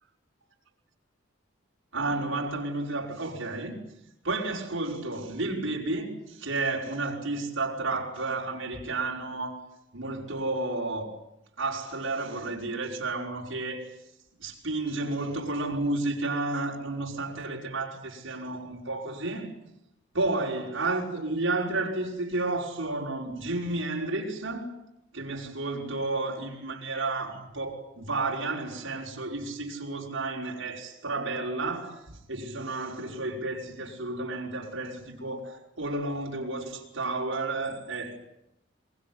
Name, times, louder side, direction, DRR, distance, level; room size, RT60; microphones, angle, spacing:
voice 1, 1.9-3.8 4.2-11.1 11.6-14.0 14.4-19.5 20.1-24.8 25.1-32.0 32.3-38.2, right 2 dB, 75° right, 5.4 m, -31 dB
25.0 x 23.0 x 9.6 m
head